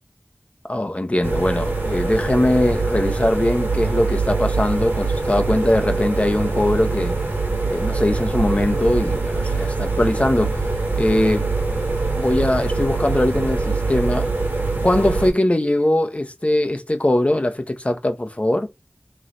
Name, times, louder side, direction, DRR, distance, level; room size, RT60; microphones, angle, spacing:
voice 1, 0.7-7.2 7.7-10.6 11.0-11.5 12.2-14.3 14.8-18.7, left 1 dB, 35° left, 0.8 m, -21 dB
sound 1, 1.2-15.3, right 3 dB, 60° right, 1.6 m, -23 dB
3.1 x 3.0 x 3.9 m
wide cardioid pair, 45°, 4 cm